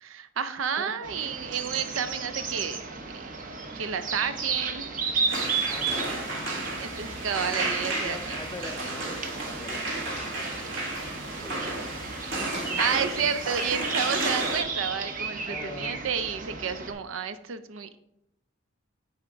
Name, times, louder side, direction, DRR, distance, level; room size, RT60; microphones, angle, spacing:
voice 1, 0.0-2.8 3.1-3.3 3.7-5.3 6.8-8.4 12.8-18.0, right 7 dB, 80° right, 11 dB, 0.5 m, -31 dB
sound 1, 1.0-16.9, right 5 dB, 45° right, 0.9 m, -34 dB
sound 2, 5.3-14.6, right 2 dB, 65° right, 1.8 m, -32 dB
voice 2, 5.7-6.6 8.0-10.7 11.4-12.1 12.4-13.0 15.5-16.0, left 2 dB, 15° left, 6 dB, 0.7 m, -43 dB
10.0 x 3.6 x 4.5 m, 0.82 s
head